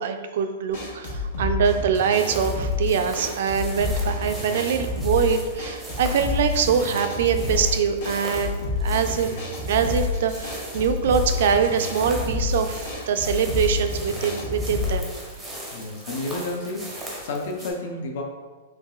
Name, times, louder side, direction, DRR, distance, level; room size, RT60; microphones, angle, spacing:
voice 1, 0.0-9.4 9.7-15.1, right 7 dB, 55° right, 7 dB, 0.3 m, -24 dB
sound 1, 0.7-15.0, left 3 dB, 75° left, 1.4 m, -29 dB
sound 2, 2.1-17.7, right 1 dB, 5° right, 0.5 m, -39 dB
voice 2, 15.7-18.2, left 2 dB, 55° left, 2 dB, 0.6 m, -31 dB
4.5 x 3.1 x 2.3 m, 1.4 s
supercardioid pair, 175°, 0 cm